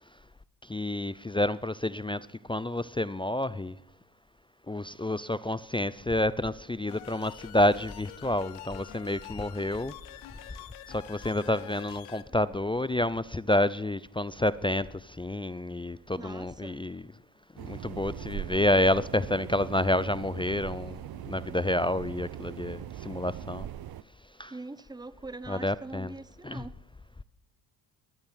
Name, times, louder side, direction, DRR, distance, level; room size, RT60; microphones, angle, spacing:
voice 1, 0.7-2.2 2.5-3.7 4.7-9.9 10.9-17.0 17.6-23.7 24.4-24.5 25.5-26.1 26.4-26.6, left 1 dB, 10° left, 0.5 m, -29 dB
sound 1, 6.9-12.2, left 14 dB, 85° left, 1.0 m, -47 dB
voice 2, 16.2-16.8 24.5-26.8, right 2 dB, 10° right, 0.9 m, -43 dB
sound 2, 17.6-24.0, right 12 dB, 50° right, 0.7 m, -40 dB
20.0 x 11.5 x 5.8 m
hypercardioid pair, 50°, 49 cm